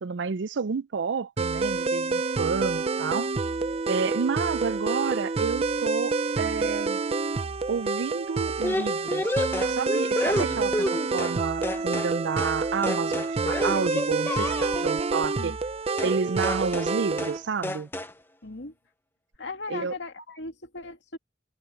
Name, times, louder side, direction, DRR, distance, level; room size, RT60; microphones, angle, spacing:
voice 1, 0.0-3.3 3.9-7.0 7.7-9.4 9.7-15.5 16.0-17.9 19.7-19.9, right 5 dB, 85° right, 0.5 m, -30 dB
sound 1, 1.4-17.4, right 4 dB, 35° right, 0.5 m, -28 dB
sound 2, 8.6-11.4 11.6-12.1 12.4-12.6 12.8-14.9 16.0-16.2 16.4-16.9 17.2-17.4 17.6-18.1, left 1 dB, 10° left, 0.8 m, -30 dB
voice 2, 16.0-16.3 18.4-18.7 19.4-21.2, left 3 dB, 85° left, 2.4 m, -38 dB
head